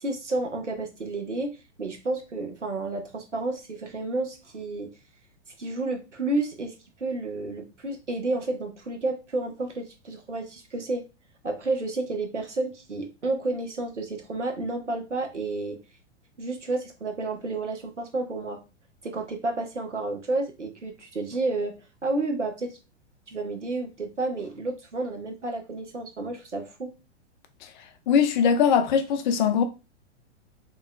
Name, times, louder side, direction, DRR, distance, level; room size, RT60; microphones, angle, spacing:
voice 1, 0.0-5.0 5.6-6.7 7.0-11.1 11.4-15.8 16.4-18.6 19.0-22.8 23.3-26.9, right 2 dB, 85° right, 1.0 m, -31 dB
voice 2, 28.1-29.6, left 7 dB, 40° left, 0.6 m, -21 dB
3.9 x 2.9 x 2.2 m
figure-of-eight pair, 105°, 35 cm